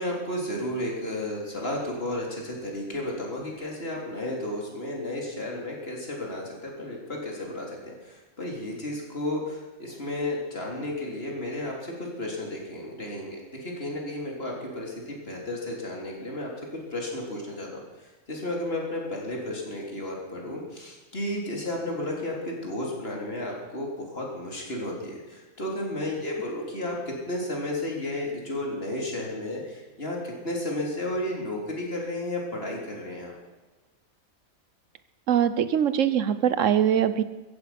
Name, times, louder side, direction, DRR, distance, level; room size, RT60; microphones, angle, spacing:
voice 1, 0.0-17.8 18.3-33.3, left 1 dB, 45° left, -1 dB, 4.0 m, -33 dB
voice 2, 35.3-37.2, right 9 dB, 65° right, 13 dB, 1.2 m, -22 dB
15.5 x 15.5 x 6.0 m, 1.2 s
omnidirectional pair, 1.5 m